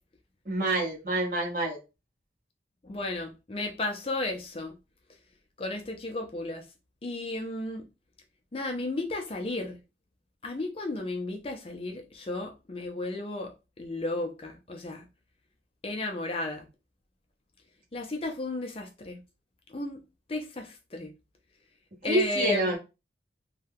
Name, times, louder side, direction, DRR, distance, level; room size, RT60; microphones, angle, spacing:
voice 1, 0.4-1.8 22.0-22.8, right 1 dB, 50° right, 1.2 m, -27 dB
voice 2, 2.8-4.7 5.6-6.7 7.0-7.8 8.5-9.8 10.4-15.0 15.8-16.7 17.9-19.2 19.7-20.0 20.3-21.1 22.0-22.7, left 2 dB, 30° left, 0.4 m, -34 dB
2.7 x 2.2 x 3.5 m
head